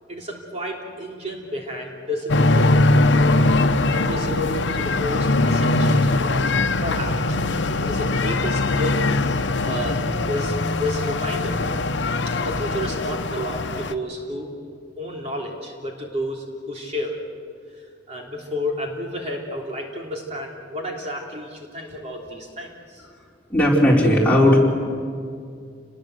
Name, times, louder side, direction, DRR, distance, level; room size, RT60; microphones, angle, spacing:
voice 1, 0.1-2.8 3.1-3.4 3.9-6.5 6.8-7.4 7.8-9.0 9.6-11.6 12.3-14.5 15.0-17.2 17.7-23.0, left 1 dB, 35° right, -1 dB, 3.3 m, -31 dB
sound 1, 2.3-13.9, left 2 dB, 75° left, 0.9 m, -21 dB
voice 2, 23.5-24.6, left 1 dB, 10° left, -4 dB, 4.8 m, -16 dB
29.0 x 20.5 x 7.9 m, 2.2 s
head